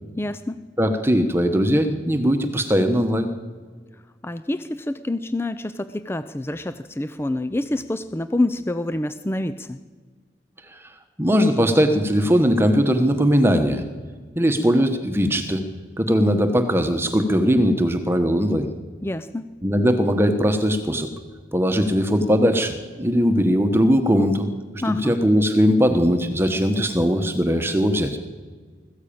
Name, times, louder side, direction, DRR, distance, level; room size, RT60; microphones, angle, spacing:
voice 1, 0.2-0.6 4.2-9.8 19.0-19.5 24.8-25.1, left 1 dB, 15° left, 12 dB, 0.5 m, -27 dB
voice 2, 0.8-3.3 11.2-13.8 14.3-15.6 16.0-18.7 19.6-21.1 21.5-24.5 24.9-28.2, equal, 15° right, 6 dB, 1.2 m, -19 dB
20.5 x 14.5 x 8.7 m, 1.5 s
head